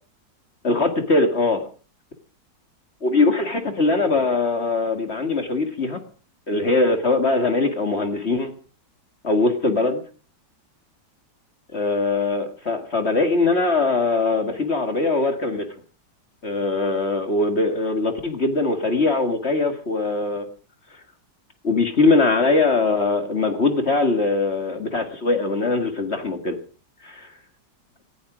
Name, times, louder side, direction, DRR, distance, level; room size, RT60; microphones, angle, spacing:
voice 1, 0.6-1.6 3.0-6.0 6.5-8.5 9.2-10.0 11.7-15.7 16.4-20.5 21.6-26.6 27.0-27.3, left 3 dB, 35° left, 7 dB, 2.1 m, -21 dB
18.0 x 15.0 x 5.0 m, 0.39 s
omnidirectional pair, 1.9 m